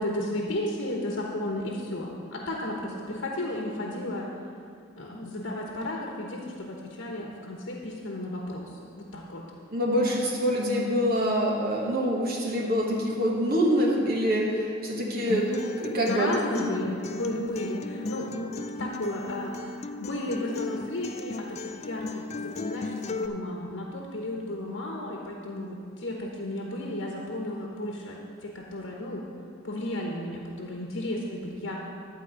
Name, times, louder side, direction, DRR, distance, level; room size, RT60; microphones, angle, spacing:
voice 1, 0.0-4.3 5.0-9.4 16.1-29.2 29.6-31.8, left 1 dB, 85° left, -1 dB, 1.1 m, -33 dB
voice 2, 9.7-16.3 18.0-18.1, equal, 50° right, -3 dB, 1.3 m, -25 dB
Acoustic guitar, 15.3-23.3, left 3 dB, 35° left, 0.4 m, -36 dB
11.5 x 4.6 x 8.1 m, 2.4 s
head